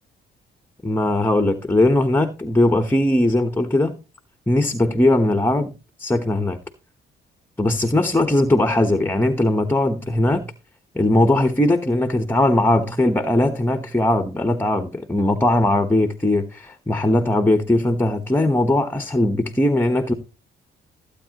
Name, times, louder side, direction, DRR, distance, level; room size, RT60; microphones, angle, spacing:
voice 1, 0.8-4.0 4.5-5.7 6.0-6.6 7.6-10.4 10.9-20.1, left 1 dB, 10° left, 1.1 m, -19 dB
15.5 x 8.7 x 3.0 m
cardioid pair, 90°, 20 cm